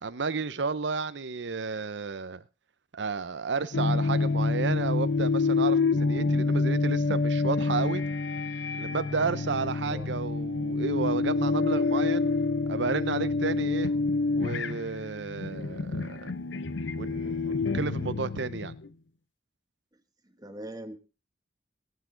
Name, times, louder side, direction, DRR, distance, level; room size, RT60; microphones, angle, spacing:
voice 1, 0.0-2.4 2.9-8.0 8.8-12.3 12.7-13.9 14.4-16.3 17.0-18.7, right 4 dB, 70° right, 0.7 m, -32 dB
sound 1, 3.7-18.9, left 3 dB, 80° left, 0.7 m, -27 dB
voice 2, 9.9-10.2 20.3-21.0, right 1 dB, 20° right, 1.3 m, -41 dB
21.0 x 8.4 x 3.8 m
head